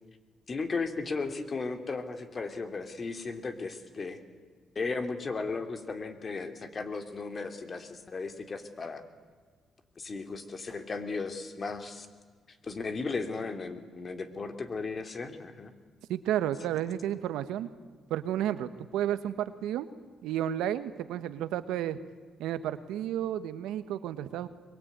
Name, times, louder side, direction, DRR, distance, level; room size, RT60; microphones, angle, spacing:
voice 1, 0.5-4.2 4.7-9.0 10.0-12.1 12.6-15.7, left 4 dB, 40° left, 8 dB, 2.8 m, -35 dB
voice 2, 16.1-17.7 18.1-19.9 20.2-22.0 22.4-24.5, right 11 dB, 90° right, 12 dB, 1.3 m, -32 dB
23.0 x 22.5 x 9.4 m, 1.6 s
cardioid pair, 90°, 0 cm